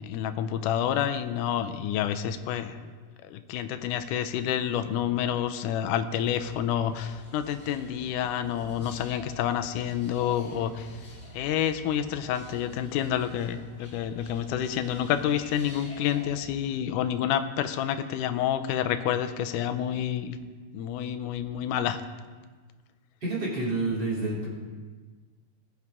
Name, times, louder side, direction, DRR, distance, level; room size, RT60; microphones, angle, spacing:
voice 1, 0.0-2.9 3.2-10.9 11.3-20.4 20.7-22.0, left 10 dB, 90° left, 10 dB, 2.2 m, -29 dB
sound 1, 6.1-16.4, left 1 dB, 35° left, 2.0 m, -48 dB
voice 2, 23.2-24.5, right 2 dB, 35° right, -6 dB, 3.8 m, -28 dB
20.0 x 7.9 x 3.7 m, 1.4 s
omnidirectional pair, 3.5 m